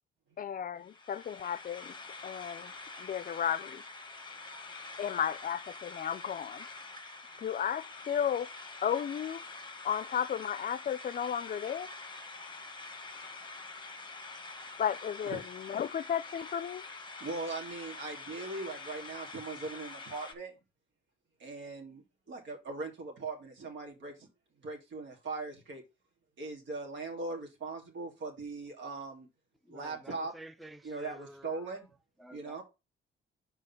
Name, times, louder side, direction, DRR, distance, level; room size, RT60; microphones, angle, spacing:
voice 1, 0.4-1.9 2.2-2.7 3.0-3.8 5.0-6.6 7.4-8.5 8.8-9.4 9.8-11.9 14.8-16.8, left 8 dB, 45° left, 0.5 m, -34 dB
sound 1, 0.8-20.3, left 3 dB, 25° left, 1.3 m, -46 dB
voice 2, 4.2-5.1 7.2-7.4 13.0-13.3 13.6-13.9 15.2-15.5 17.2-20.5 21.4-24.3 24.6-25.8 26.4-29.3 29.7-30.3 30.8-31.9 32.3-32.6, right 3 dB, 70° right, 2.7 m, -40 dB
voice 3, 29.6-31.7 32.2-32.6, right 1 dB, ahead, 0.5 m, -51 dB
5.4 x 4.5 x 5.8 m
cardioid pair, 90°, 20 cm